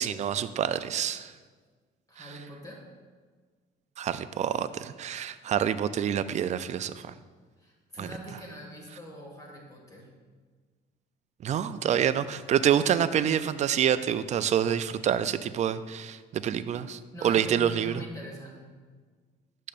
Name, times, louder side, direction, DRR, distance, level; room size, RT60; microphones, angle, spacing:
voice 1, 0.0-1.3 2.2-2.3 4.0-7.1 8.0-8.1 11.4-18.0, right 9 dB, 45° right, 13 dB, 0.4 m, -27 dB
voice 2, 2.1-2.8 7.6-10.1 17.1-18.7, equal, 20° left, -1 dB, 1.8 m, -43 dB
10.0 x 6.5 x 2.5 m, 1.5 s
cardioid pair, 110°, 17 cm